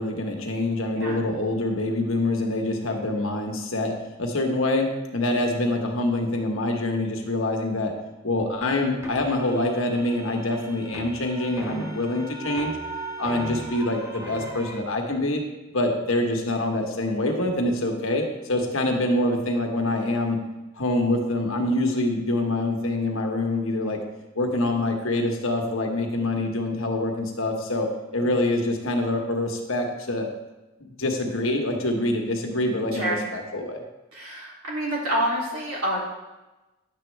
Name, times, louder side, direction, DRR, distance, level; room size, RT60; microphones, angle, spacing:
voice 1, 0.0-3.9 4.2-7.9 8.2-12.7 13.2-15.4 15.7-20.4 20.8-24.0 24.3-30.3 30.8-33.8, left 1 dB, 70° left, 2 dB, 1.3 m, -25 dB
voice 2, 0.9-1.2 32.9-33.3 34.1-36.0, equal, 85° right, -5 dB, 3.1 m, -27 dB
sound 1, 9.0-14.8, right 3 dB, 15° right, 0.9 m, -37 dB
10.0 x 7.5 x 3.4 m, 1.1 s
head